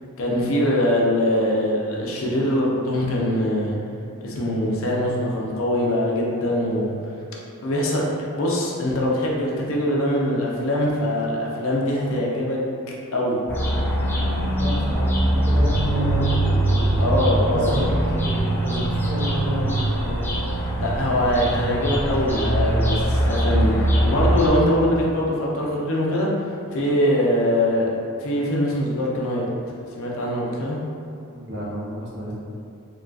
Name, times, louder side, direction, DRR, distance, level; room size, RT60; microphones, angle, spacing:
voice 1, 0.2-3.8 4.2-6.9 7.6-8.0 8.3-12.6 13.1-13.4 17.0-17.9 20.8-27.9 28.2-29.4 30.0-30.8, left 1 dB, 60° left, -3 dB, 0.5 m, -22 dB
sound 1, 13.5-24.5, right 1 dB, 10° left, 0.4 m, -22 dB
voice 2, 14.1-17.0 17.5-20.3 31.3-32.3, equal, 50° right, -6 dB, 0.7 m, -30 dB
3.7 x 2.2 x 2.4 m, 2.5 s
head